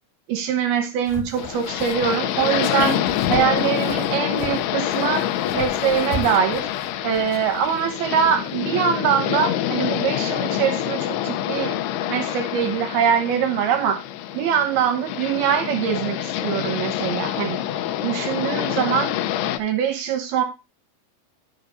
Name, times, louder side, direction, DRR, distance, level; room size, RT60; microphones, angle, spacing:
voice 1, 0.3-3.0 3.3-5.2 5.5-6.7 7.0-11.7 12.1-14.0 14.3-17.6 18.0-19.1 19.6-20.4, right 8 dB, 75° right, 6 dB, 2.9 m, -23 dB
sound 1, 1.1-7.8 8.1-8.2, left 4 dB, 65° left, 1.5 m, -33 dB
sound 2, 1.4-19.6, left 12 dB, 90° left, 2.7 m, -26 dB
11.5 x 6.8 x 2.5 m, 0.27 s
omnidirectional pair, 4.6 m